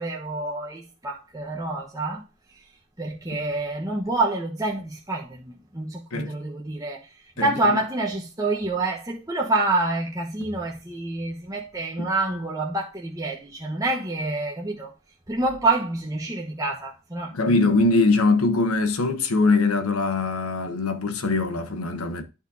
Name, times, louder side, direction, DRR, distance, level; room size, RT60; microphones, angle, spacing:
voice 1, 0.0-2.2 3.0-7.0 7.4-14.9 15.3-17.6, right 2 dB, 15° right, 1.1 m, -27 dB
voice 2, 7.4-7.8 12.0-12.1 17.3-22.2, left 3 dB, 80° left, 1.2 m, -22 dB
11.5 x 4.3 x 2.8 m
head